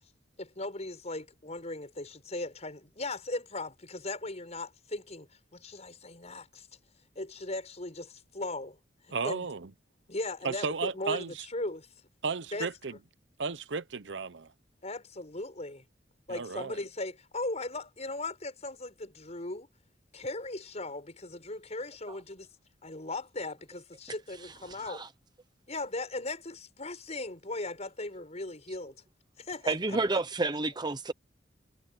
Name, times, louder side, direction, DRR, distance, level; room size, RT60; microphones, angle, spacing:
voice 1, 0.4-6.7 7.1-8.8 9.2-9.5 10.1-11.9 12.5-12.7 14.8-15.8 16.3-19.7 20.1-22.5 22.8-25.0 25.7-29.0 29.4-30.0 30.4-30.5, left 2 dB, 40° left, 6.3 m, -38 dB
voice 2, 9.1-9.6 10.4-11.3 12.2-12.9 13.4-14.5 16.3-16.8 29.9-30.0, right 4 dB, 80° right, 0.9 m, -34 dB
voice 3, 24.7-25.1 29.7-31.1, right 3 dB, 25° right, 0.9 m, -30 dB
head